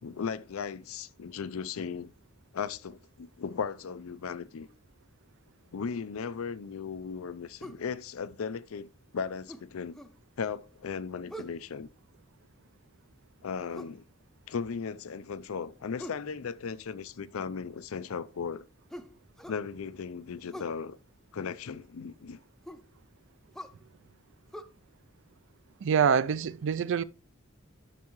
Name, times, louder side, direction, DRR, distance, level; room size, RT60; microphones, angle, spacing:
voice 1, 0.0-2.1 2.5-4.7 5.7-10.0 10.4-11.9 13.4-14.0 14.5-18.7 19.5-21.0 21.3-22.4, left 6 dB, 80° left, 0.5 m, -36 dB
sound 1, 7.6-7.9 9.5-10.2 11.3-11.6 13.7-14.0 16.0-16.3 18.9-19.7 20.5-20.8 22.7-22.9 23.5-23.8 24.5-24.6, equal, ahead, 0.5 m, -44 dB
voice 2, 25.8-27.0, right 7 dB, 60° right, 0.4 m, -25 dB
10.5 x 6.4 x 3.0 m
head